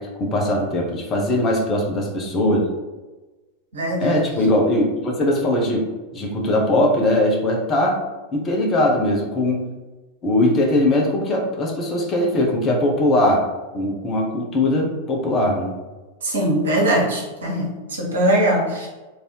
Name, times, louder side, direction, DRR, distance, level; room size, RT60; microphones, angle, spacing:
voice 1, 0.2-2.7 4.0-8.0 8.3-9.7 10.2-13.5 13.7-15.8, left 1 dB, 25° left, 0 dB, 0.8 m, -20 dB
voice 2, 3.7-4.2 16.2-18.9, right 1 dB, 70° right, -3 dB, 1.2 m, -21 dB
3.2 x 2.7 x 4.5 m, 1.2 s
figure-of-eight pair, 90°, 0 cm